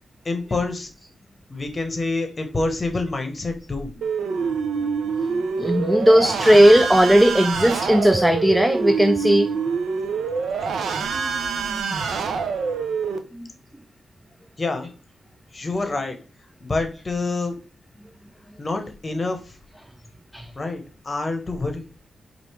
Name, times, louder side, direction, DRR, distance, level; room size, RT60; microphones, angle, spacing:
voice 1, 0.2-0.9 1.5-3.9 14.6-14.9 15.5-16.2 16.6-17.6 18.6-19.5 20.6-21.8, left 3 dB, 30° left, 0.9 m, -27 dB
sound 1, 4.0-13.2, right 5 dB, 80° right, 0.5 m, -26 dB
voice 2, 5.6-9.5 13.3-13.5 20.3-20.5, equal, 5° right, 0.3 m, -16 dB
4.4 x 2.5 x 3.2 m
cardioid pair, 90°, 0 cm